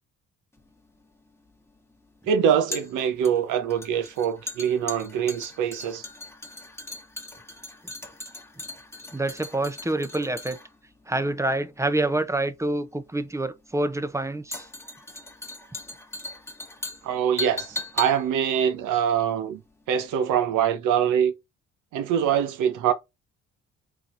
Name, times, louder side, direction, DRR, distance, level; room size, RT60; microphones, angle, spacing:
sound 1, 0.6-19.8 20.1-20.2, left 2 dB, 10° left, 1.2 m, -39 dB
voice 1, 2.3-6.0 17.0-19.6 19.9-21.3 21.9-22.9, right 8 dB, 85° right, 0.9 m, -24 dB
voice 2, 9.1-10.6 11.1-14.7, right 2 dB, 10° right, 0.6 m, -27 dB
4.4 x 4.1 x 2.5 m
cardioid pair, 90°, 30 cm